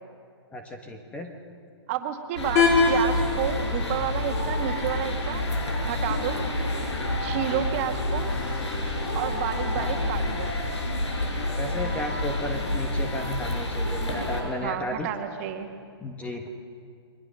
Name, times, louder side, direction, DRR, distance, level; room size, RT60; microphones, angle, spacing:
voice 1, 0.5-1.3 7.4-7.7 9.7-9.9 11.6-15.1 16.0-16.5, left 1 dB, 10° left, 4 dB, 1.4 m, -34 dB
voice 2, 1.9-5.5 5.9-6.5 7.2-8.3 9.1-10.5 14.6-15.7, right 10 dB, 30° right, 4 dB, 2.0 m, -30 dB
sound 1, 2.3-14.4, left 1 dB, 85° left, 7.0 m, -28 dB
sound 2, 2.6-8.6, left 4 dB, 35° left, 5.0 m, -28 dB
sound 3, 7.6-10.9, left 5 dB, 50° left, 7.9 m, -44 dB
29.5 x 23.0 x 6.4 m, 2.2 s
hypercardioid pair, 150°, 14 cm